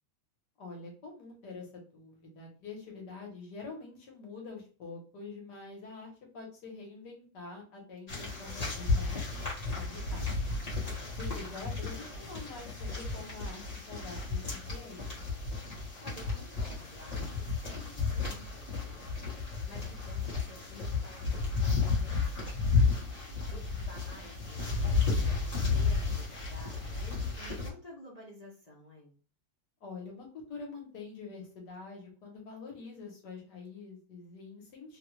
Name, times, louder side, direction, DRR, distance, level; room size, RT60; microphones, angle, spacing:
voice 1, 0.6-9.2 9.7-10.3 11.1-15.1 23.5-23.9 29.8-35.0, left 4 dB, 60° left, 0 dB, 1.6 m, -46 dB
sound 1, 8.1-27.7, left 4 dB, 25° left, 1.0 m, -32 dB
voice 2, 16.0-22.7 23.2-29.2, left 1 dB, 80° left, -5 dB, 0.3 m, -53 dB
3.4 x 2.3 x 3.1 m, 0.38 s
omnidirectional pair, 2.1 m